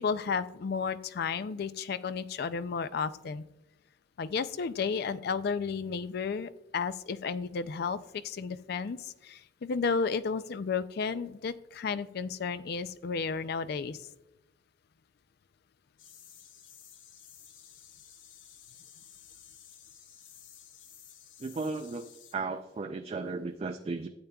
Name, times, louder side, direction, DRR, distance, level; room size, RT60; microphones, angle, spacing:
voice 1, 0.0-3.4 4.2-8.0 8.2-14.0, left 5 dB, 55° left, 14 dB, 0.4 m, -32 dB
sound 1, 16.0-22.3, left 9 dB, 90° left, 0.9 m, -54 dB
voice 2, 21.4-24.1, right 3 dB, 30° right, 6 dB, 0.3 m, -35 dB
12.5 x 8.6 x 2.3 m, 0.92 s
head